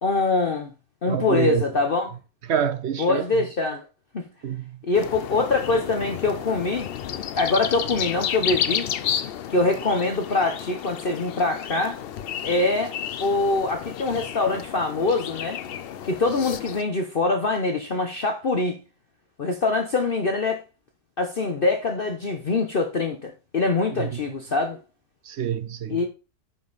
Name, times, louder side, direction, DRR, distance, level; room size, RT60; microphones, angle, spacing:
voice 1, 0.0-0.7 1.0-2.1 3.0-3.8 4.1-4.2 4.8-6.9 7.3-8.9 9.5-12.0 12.4-12.9 13.2-15.6 16.0-18.8 19.4-20.6 21.2-24.8 25.9-26.1, left 3 dB, 40° left, 1.0 m, -24 dB
voice 2, 1.1-1.7 2.5-3.2 4.4-4.8 23.9-24.2 25.3-26.0, right 8 dB, 60° right, 0.8 m, -26 dB
sound 1, 4.9-16.8, left 9 dB, 65° left, 0.6 m, -32 dB
9.7 x 5.4 x 4.0 m
omnidirectional pair, 1.6 m